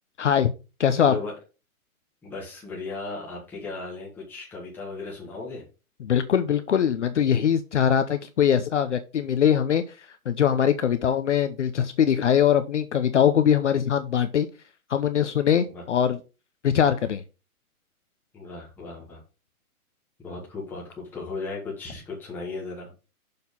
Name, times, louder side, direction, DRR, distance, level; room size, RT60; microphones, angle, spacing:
voice 1, 0.2-0.5 0.8-1.1 6.0-14.5 14.9-16.2 16.6-17.2, left 8 dB, 55° left, 9 dB, 0.7 m, -22 dB
voice 2, 2.2-5.6 15.7-15.8 18.3-19.2 20.2-22.9, left 3 dB, 5° left, -4 dB, 1.5 m, -36 dB
6.7 x 4.1 x 5.3 m, 0.31 s
hypercardioid pair, 175°, 44 cm